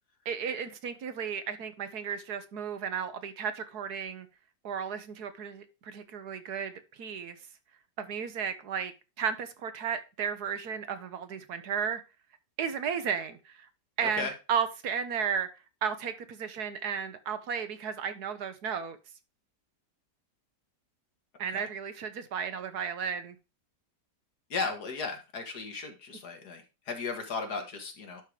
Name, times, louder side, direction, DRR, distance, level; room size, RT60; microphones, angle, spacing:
voice 1, 0.2-4.3 4.6-6.7 7.0-7.4 8.0-8.9 9.2-12.0 12.6-13.7 14.0-15.5 15.8-19.0 21.4-23.4, right 7 dB, 70° right, 10 dB, 1.4 m, -34 dB
voice 2, 14.0-14.3 21.5-21.7 24.5-28.2, left 4 dB, 65° left, 5 dB, 2.0 m, -36 dB
11.5 x 3.8 x 4.9 m, 0.28 s
omnidirectional pair, 1.8 m